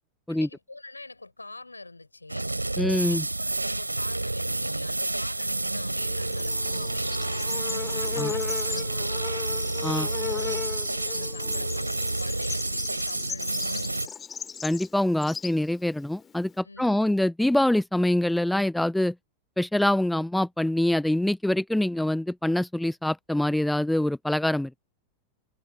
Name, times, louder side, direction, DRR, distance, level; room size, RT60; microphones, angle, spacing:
voice 1, 0.3-2.5 3.0-7.6 7.9-9.3 9.6-14.1 16.6-17.2, left 2 dB, 80° left, 4.5 m, -45 dB
sound 1, 2.3-14.1, right 2 dB, 85° right, 2.6 m, -29 dB
voice 2, 2.8-3.2 8.2-8.3 9.8-10.1 14.6-19.1 19.6-24.7, left 1 dB, 5° left, 0.6 m, -25 dB
Bird / Insect, 6.0-16.6, left 6 dB, 20° left, 1.8 m, -37 dB
figure-of-eight pair, 90°, 0 cm